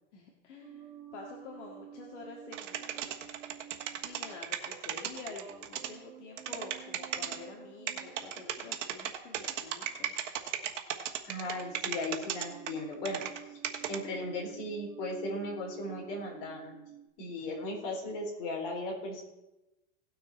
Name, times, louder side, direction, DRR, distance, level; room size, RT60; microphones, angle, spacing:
voice 1, 0.1-3.0 3.9-10.2, left 4 dB, 75° left, 0 dB, 1.8 m, -48 dB
sound 1, 0.6-10.0 10.8-11.1 11.4-17.1, right 10 dB, 15° right, 0.5 m, -51 dB
sound 2, 2.5-5.9 6.4-7.4 7.9-13.4 13.6-14.0, right 10 dB, 85° right, 1.4 m, -35 dB
voice 2, 11.3-13.2 13.9-16.8 17.2-19.2, left 2 dB, 50° left, -1 dB, 3.8 m, -37 dB
17.5 x 6.4 x 4.2 m, 0.96 s
supercardioid pair, 170°, 36 cm